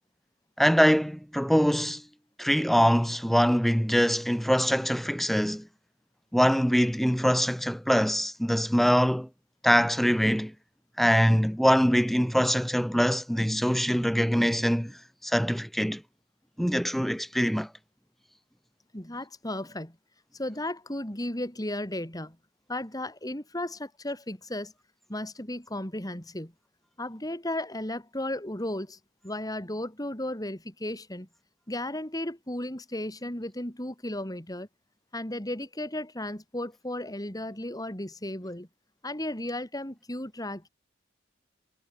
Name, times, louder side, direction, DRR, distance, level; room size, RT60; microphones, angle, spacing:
voice 1, 0.6-2.0 2.4-5.7 6.3-9.3 9.6-10.5 11.0-15.0 15.2-16.0 16.6-17.7, equal, ahead, 3.4 m, -23 dB
voice 2, 18.9-20.0 20.3-22.4 22.7-24.7 25.1-26.5 27.0-29.0 29.2-31.3 31.7-34.7 35.1-38.7 39.0-40.7, left 1 dB, 20° left, 4.4 m, -34 dB
head